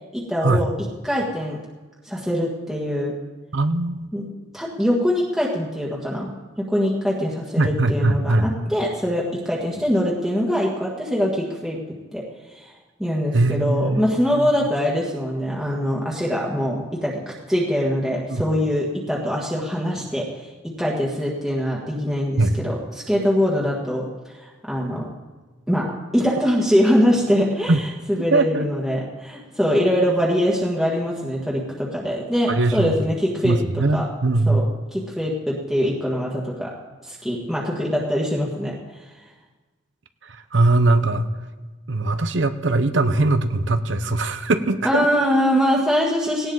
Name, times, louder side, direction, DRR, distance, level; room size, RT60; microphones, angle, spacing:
voice 1, 0.1-0.7 1.0-1.6 2.0-3.1 4.1-4.3 4.5-6.3 6.7-12.2 12.5-12.7 13.0-17.2 17.5-20.5 20.8-22.8 23.1-25.1 25.7-27.7 28.1-34.1 34.5-34.6 34.9-36.7 37.0-38.7 44.8-46.5, equal, ahead, -5 dB, 1.7 m, -23 dB
voice 2, 3.5-4.1 7.6-8.5 13.3-14.7 18.3-18.4 22.4-22.6 27.7-27.8 28.3-28.7 32.5-32.9 33.4-34.7 40.2-41.3 41.9-45.2, right 2 dB, 85° right, 9 dB, 0.9 m, -21 dB
18.0 x 17.5 x 4.0 m, 1.3 s
head